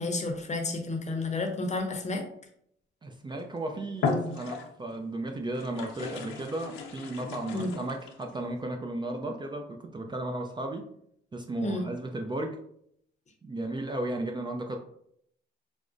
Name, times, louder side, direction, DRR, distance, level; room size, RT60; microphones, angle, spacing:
voice 1, 0.0-2.2 7.5-7.7 11.6-11.9, left 2 dB, 35° left, 4 dB, 0.7 m, -31 dB
voice 2, 3.0-10.9 11.3-12.6 13.4-14.8, right 1 dB, 25° right, 3 dB, 0.4 m, -34 dB
sound 1, 3.3-3.5 3.9-4.9 5.5-8.3, left 4 dB, 80° left, 0.6 m, -35 dB
4.8 x 2.0 x 2.5 m, 0.71 s
cardioid pair, 90°, 20 cm